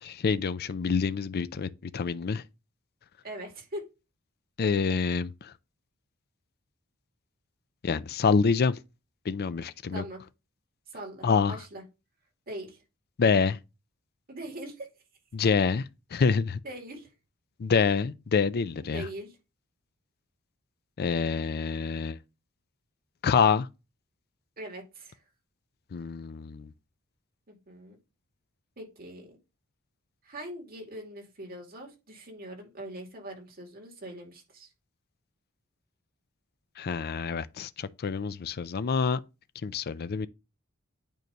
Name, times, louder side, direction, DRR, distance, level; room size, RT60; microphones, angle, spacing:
voice 1, 0.0-2.4 4.6-5.5 7.8-8.8 9.2-10.0 11.2-11.6 13.2-13.6 15.3-16.6 17.6-19.1 21.0-22.2 23.2-23.7 25.9-26.7 36.8-39.2 39.6-40.3, left 5 dB, 45° left, 0.4 m, -27 dB
voice 2, 3.2-3.9 9.9-10.2 10.9-11.8 12.5-12.8 14.3-14.9 16.6-17.1 18.8-19.3 24.6-25.2 27.5-28.0 28.8-29.4 30.2-34.7, right 1 dB, 45° right, 2.6 m, -41 dB
9.1 x 3.1 x 5.3 m
head